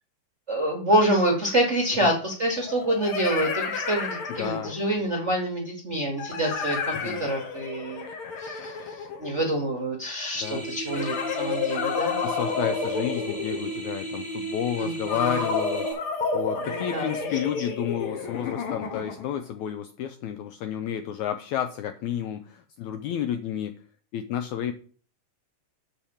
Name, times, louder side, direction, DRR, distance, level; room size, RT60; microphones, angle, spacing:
voice 1, 0.5-8.0 8.4-8.7 9.2-12.1 14.8-15.2 16.6-17.3, right 1 dB, 45° right, 0 dB, 0.9 m, -26 dB
sound 1, 1.1-1.2 2.6-4.9 6.2-9.7 10.9-13.9 15.1-19.4, left 5 dB, 60° left, 1.5 m, -31 dB
voice 2, 4.3-4.7 7.0-7.3 10.4-10.6 12.2-15.9 16.3-23.7 24.1-24.7, left 10 dB, 90° left, 8 dB, 1.7 m, -31 dB
sound 2, 10.4-15.9, right 2 dB, 15° left, 4.0 m, -35 dB
7.4 x 5.0 x 7.1 m, 0.41 s
omnidirectional pair, 3.9 m